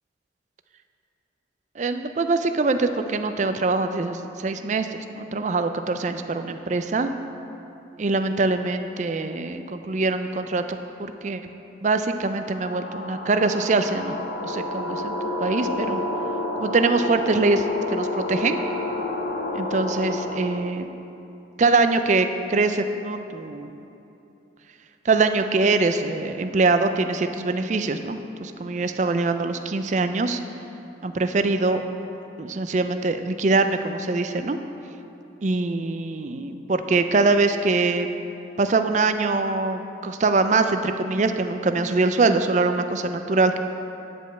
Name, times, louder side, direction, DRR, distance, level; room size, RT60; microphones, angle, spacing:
voice 1, 1.8-7.1 8.0-11.4 11.8-14.2 14.4-16.0 16.6-18.6 19.5-20.9 21.6-23.7 25.0-30.4 31.0-31.8 32.4-34.6 35.4-38.1 38.6-43.6, right 3 dB, 40° right, 8 dB, 0.4 m, -23 dB
sound 1, 12.3-20.7, left 1 dB, 85° left, 1.2 m, -29 dB
9.7 x 5.3 x 7.7 m, 2.9 s
head